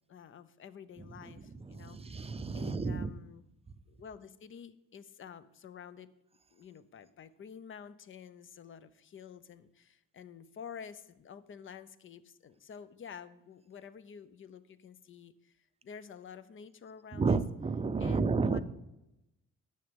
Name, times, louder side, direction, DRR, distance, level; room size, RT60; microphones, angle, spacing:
voice 1, 0.1-3.4 3.9-6.1 6.5-17.4 18.0-18.6, left 7 dB, 45° left, 14 dB, 0.6 m, -50 dB
voice 2, 1.0-3.1 17.1-18.6, right 4 dB, 20° right, 12 dB, 0.6 m, -32 dB
9.2 x 6.6 x 5.2 m, 0.91 s
cardioid pair, 90°, 30 cm